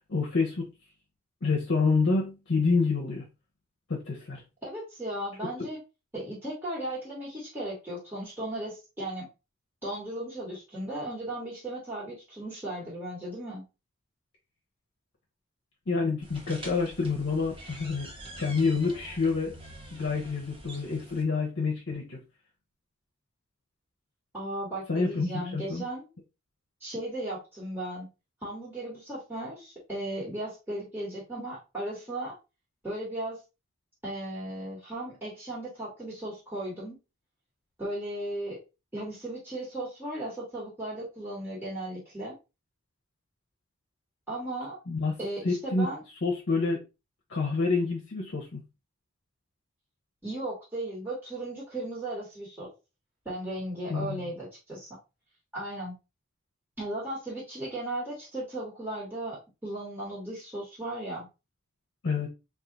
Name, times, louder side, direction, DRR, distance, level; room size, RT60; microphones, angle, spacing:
voice 1, 0.1-0.7 1.4-3.2 3.9-4.4 15.9-18.1 18.4-19.5 19.9-22.2 24.9-25.8 44.9-45.2 45.4-45.9 46.2-46.8 47.3-48.6 53.9-54.2 62.0-62.3, left 4 dB, 55° left, -2 dB, 0.8 m, -27 dB
voice 2, 4.6-5.8 6.1-9.3 9.8-13.6 24.3-26.1 26.8-28.1 28.4-32.4 32.8-33.4 34.0-37.0 37.8-38.6 38.9-42.3 44.3-44.8 45.2-46.0 50.2-52.7 53.2-54.9 55.5-55.9 56.8-61.3, right 1 dB, 10° right, -7 dB, 1.6 m, -36 dB
sound 1, 16.2-21.2, right 1 dB, 25° right, 1.0 m, -46 dB
3.6 x 2.4 x 3.9 m, 0.28 s
head